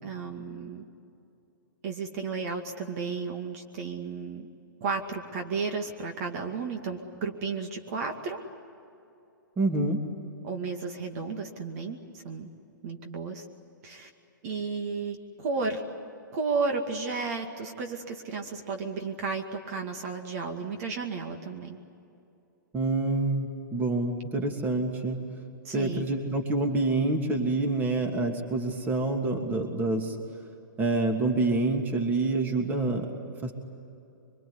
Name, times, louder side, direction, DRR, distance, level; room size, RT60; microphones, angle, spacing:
voice 1, 0.0-0.8 1.8-4.5 4.8-8.4 10.4-12.5 12.8-13.5 13.8-14.1 14.4-15.8 16.3-21.8 25.6-26.1, right 4 dB, 45° right, 4 dB, 2.3 m, -33 dB
voice 2, 9.6-10.0 22.7-25.2 25.7-30.2 30.8-33.1 33.4-33.5, right 2 dB, 15° right, 4 dB, 2.7 m, -27 dB
24.5 x 23.5 x 9.8 m, 2.8 s
hypercardioid pair, 135°, 11 cm